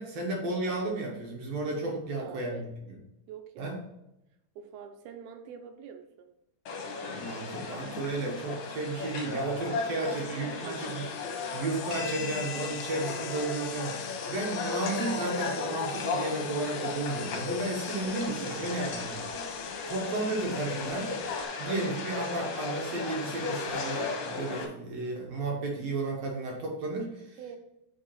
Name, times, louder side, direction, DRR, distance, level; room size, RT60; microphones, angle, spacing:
voice 1, 0.0-2.7 3.6-3.8 7.1-11.1 11.5-19.3 19.9-21.2 21.6-27.4, right 2 dB, 65° right, -1 dB, 1.7 m, -33 dB
voice 2, 1.9-2.7 3.3-3.8 4.6-6.3 9.5-11.1 18.0-18.8 21.6-22.1 27.4-27.6, right 7 dB, 80° right, 6 dB, 2.5 m, -44 dB
sound 1, 6.7-24.7, left 4 dB, 65° left, 2.4 m, -35 dB
sound 2, 9.9-21.5, left 11 dB, 90° left, 2.6 m, -44 dB
7.3 x 4.6 x 4.2 m, 0.87 s
omnidirectional pair, 4.6 m